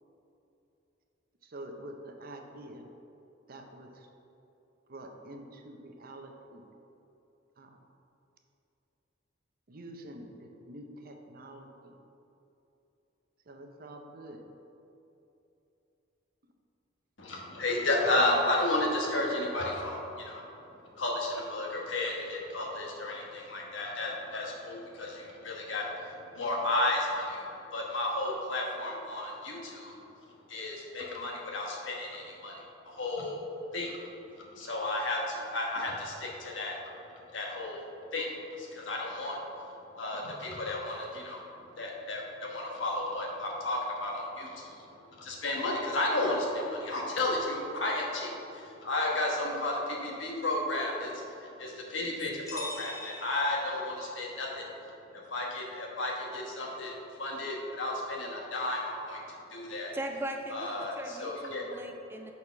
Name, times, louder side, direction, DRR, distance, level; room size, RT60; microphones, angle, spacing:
voice 1, 1.4-2.9 3.5-4.1 4.9-6.7 7.6-7.9 9.7-12.0 13.5-14.4, right 1 dB, 50° right, 4 dB, 0.6 m, -47 dB
voice 2, 17.2-20.4 21.0-27.4 27.7-29.9 30.5-32.5 32.8-33.4 33.7-34.0 34.4-36.8 37.3-37.8 38.1-38.3 38.6-39.4 40.0-41.4 41.8-44.9 45.2-51.2 51.6-54.7 55.3-59.2 59.5-59.9 60.5-61.8, left 2 dB, 70° left, -1 dB, 1.3 m, -33 dB
sound 1, 52.4-54.3, left 1 dB, 15° left, 1.1 m, -43 dB
voice 3, 59.9-62.3, right 1 dB, 10° right, 3 dB, 0.3 m, -39 dB
6.5 x 4.2 x 5.7 m, 2.9 s
head